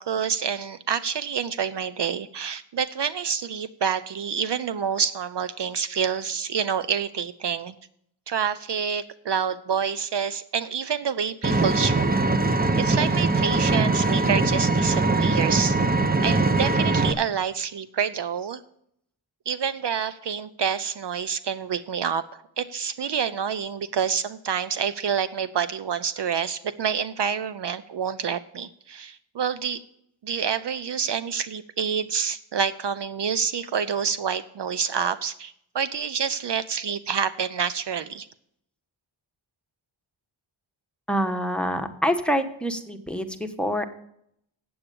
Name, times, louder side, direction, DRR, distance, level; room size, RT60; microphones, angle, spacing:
voice 1, 0.0-7.7 8.3-12.2 12.8-15.8 16.2-18.6 19.5-29.8 30.2-38.3, right 7 dB, 60° right, 14 dB, 0.6 m, -27 dB
Vehicle, 11.4-17.1, right 3 dB, 20° right, 0.8 m, -22 dB
voice 2, 41.1-43.8, equal, ahead, 8 dB, 1.1 m, -26 dB
8.6 x 7.9 x 6.9 m, 0.71 s
cardioid pair, 65°, 49 cm